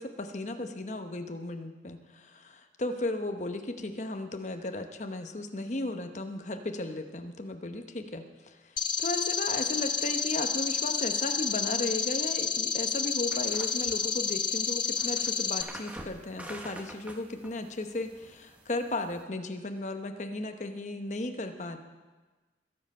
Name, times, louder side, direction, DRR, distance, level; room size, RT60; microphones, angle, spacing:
voice 1, 0.0-8.6 9.0-21.8, left 2 dB, 40° left, 6 dB, 1.0 m, -35 dB
sound 1, 8.8-15.6, left 6 dB, 25° left, 0.6 m, -30 dB
sound 2, 13.3-19.2, right 1 dB, 10° right, 0.9 m, -47 dB
21.5 x 7.6 x 5.5 m, 1.3 s
head